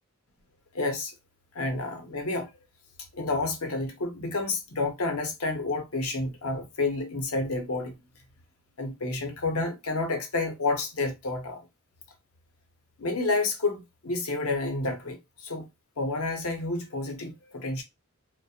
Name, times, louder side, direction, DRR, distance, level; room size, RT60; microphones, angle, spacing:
voice 1, 0.7-1.1 1.5-2.5 3.1-7.9 8.8-11.6 13.0-15.7 16.0-17.8, left 3 dB, 70° left, 0.7 m, -30 dB
2.3 x 2.1 x 2.7 m
head